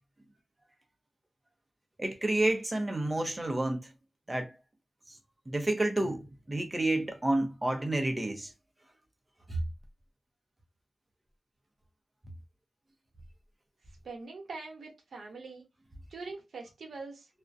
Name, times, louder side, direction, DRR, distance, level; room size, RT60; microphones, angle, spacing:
voice 1, 2.0-3.9 4.3-4.6 5.1-5.2 5.5-8.5 9.5-9.6, right 2 dB, 20° right, 0.6 m, -30 dB
voice 2, 14.0-15.7 16.1-17.3, right 3 dB, 75° right, 0.9 m, -43 dB
2.4 x 2.1 x 2.5 m
wide cardioid pair, 95°, 0 cm